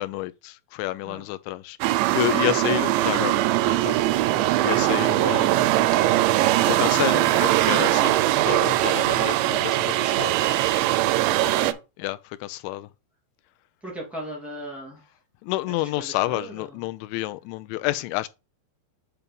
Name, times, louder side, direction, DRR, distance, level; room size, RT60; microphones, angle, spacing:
voice 1, 0.0-1.8 2.1-4.0 4.6-5.7 6.7-10.3 12.0-12.9 15.4-18.3, left 17 dB, 85° left, 2.9 m, -29 dB
sound 1, 1.8-11.7, right 15 dB, 85° right, 2.7 m, -21 dB
voice 2, 11.3-11.8 13.8-15.0 15.8-16.6, right 1 dB, ahead, 0.7 m, -37 dB
8.3 x 2.9 x 5.2 m
omnidirectional pair, 5.2 m